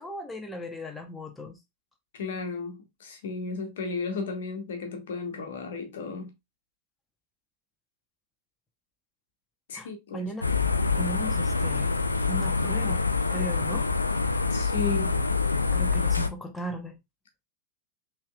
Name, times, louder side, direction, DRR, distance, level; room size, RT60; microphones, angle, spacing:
voice 1, 0.0-1.6 9.7-10.5 11.0-11.9 12.2-13.0 13.3-13.9 15.7-17.0, equal, 10° left, 1.0 m, -37 dB
voice 2, 2.1-6.3 9.7-10.3 14.5-15.2, left 4 dB, 60° left, 1.3 m, -34 dB
sound 1, 10.4-16.3, left 4 dB, 80° left, 0.4 m, -26 dB
5.7 x 3.4 x 2.4 m
figure-of-eight pair, 90°, 0 cm